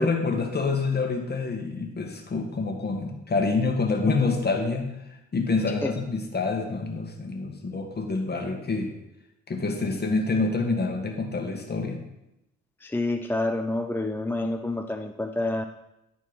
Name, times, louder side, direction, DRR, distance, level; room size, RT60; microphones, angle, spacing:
voice 1, 0.0-8.9 9.5-12.0, left 3 dB, 35° left, 3 dB, 1.7 m, -27 dB
voice 2, 12.8-15.6, left 2 dB, 5° left, 7 dB, 0.4 m, -28 dB
11.0 x 4.4 x 5.4 m, 0.90 s
cardioid pair, 90°, 30 cm